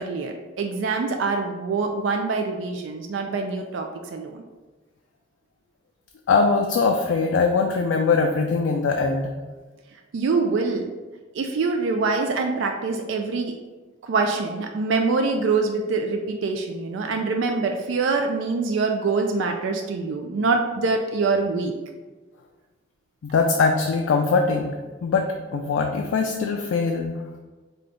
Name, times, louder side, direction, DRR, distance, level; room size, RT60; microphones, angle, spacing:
voice 1, 0.0-4.4 10.1-10.9 11.3-13.5 14.0-21.7, right 4 dB, 80° right, 4 dB, 0.3 m, -25 dB
voice 2, 6.3-9.3 23.2-24.8 25.0-27.2, left 4 dB, 90° left, 3 dB, 0.3 m, -22 dB
4.9 x 2.2 x 3.8 m, 1.3 s
head